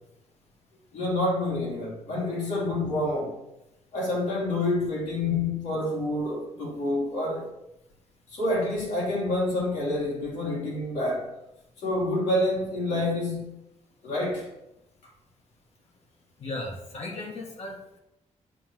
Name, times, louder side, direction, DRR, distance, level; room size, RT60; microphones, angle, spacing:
voice 1, 0.9-3.4 3.9-7.5 8.3-11.3 11.8-13.6 14.0-14.5, left 2 dB, 90° left, -5 dB, 2.5 m, -28 dB
voice 2, 16.4-18.0, left 2 dB, 55° left, 0 dB, 1.4 m, -36 dB
7.1 x 3.0 x 5.8 m, 0.88 s
wide cardioid pair, 150°, 13 cm